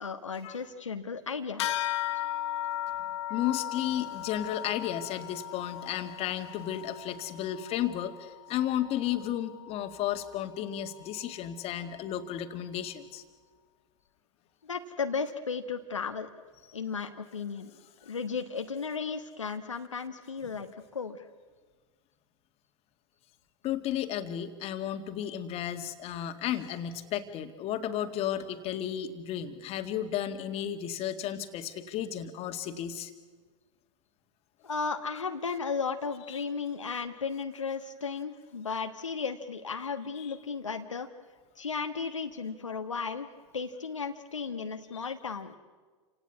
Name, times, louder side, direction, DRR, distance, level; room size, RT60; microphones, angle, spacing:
voice 1, 0.0-1.9 14.6-16.3 16.7-17.7 18.0-21.2 34.6-41.1 41.6-43.3 43.5-45.5, left 5 dB, 90° left, 6 dB, 1.4 m, -35 dB
sound 1, 1.6-11.4, left 13 dB, 65° left, 1.2 m, -37 dB
voice 2, 3.0-13.2 18.0-18.1 23.6-33.1 36.3-36.4 40.2-40.4 44.9-45.1, left 11 dB, 40° left, 7 dB, 2.1 m, -33 dB
28.5 x 17.5 x 9.6 m, 1.5 s
hypercardioid pair, 95°, 16 cm